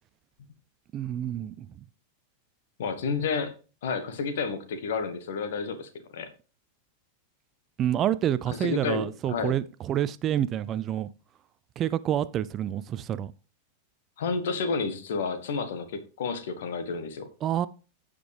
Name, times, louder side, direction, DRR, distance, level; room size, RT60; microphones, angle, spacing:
voice 1, 0.9-1.7 7.8-11.1 11.8-13.3 17.4-17.7, right 11 dB, 30° right, 0.4 m, -28 dB
voice 2, 2.8-3.5 3.8-6.3 8.5-9.6 14.2-17.3, left 5 dB, 60° left, 1.3 m, -30 dB
14.5 x 5.0 x 3.4 m
figure-of-eight pair, 90°, 0 cm